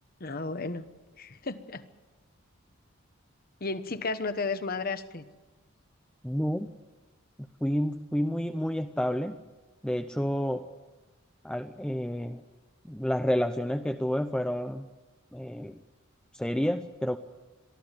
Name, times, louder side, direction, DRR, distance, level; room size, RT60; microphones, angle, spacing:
voice 1, 0.2-0.8 1.2-1.8 3.6-5.2, left 3 dB, 45° left, 11 dB, 1.1 m, -33 dB
voice 2, 6.2-6.7 7.6-9.4 9.8-10.6 11.4-12.4 12.8-14.9 15.3-15.8 16.3-17.2, equal, 5° left, 6 dB, 0.6 m, -29 dB
23.0 x 14.0 x 9.1 m, 1.2 s
head